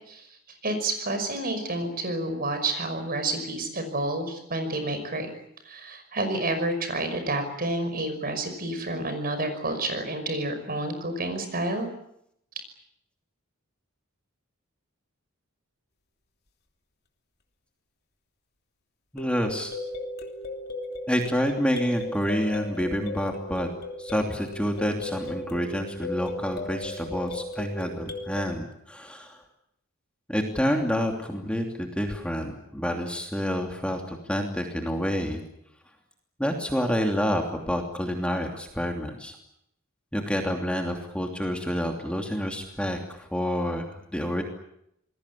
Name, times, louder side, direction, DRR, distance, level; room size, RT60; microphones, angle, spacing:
voice 1, 0.6-5.3 5.7-11.9, right 2 dB, 45° right, 8 dB, 5.8 m, -29 dB
voice 2, 19.1-19.7 21.1-23.7 24.0-29.4 30.3-35.4 36.4-39.4 40.1-44.4, equal, 5° left, 2 dB, 2.9 m, -28 dB
sound 1, 19.2-28.4, left 1 dB, 50° left, 3.1 m, -36 dB
27.5 x 21.0 x 8.5 m, 0.77 s
head